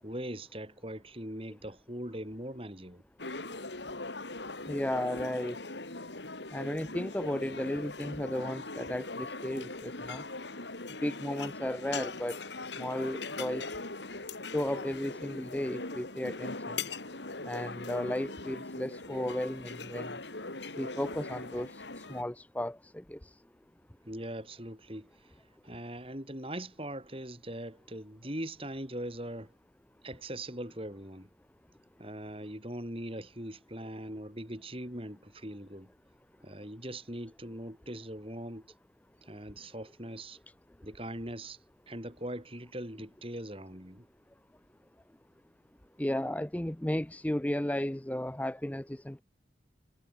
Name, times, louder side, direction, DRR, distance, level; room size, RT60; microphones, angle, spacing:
voice 1, 0.0-3.0 24.0-29.5 30.0-31.3 32.0-35.9 36.4-38.7 39.2-40.4 40.8-41.6 41.9-44.1, right 1 dB, 30° right, 7.7 m, -41 dB
sound 1, 3.2-22.2, left 3 dB, 80° left, 4.1 m, -40 dB
voice 2, 4.7-5.6 6.5-10.2 11.0-12.4 12.8-13.7 14.5-16.8 17.5-20.1 20.8-21.8 22.1-23.2 46.0-49.2, left 1 dB, 10° left, 0.5 m, -34 dB
head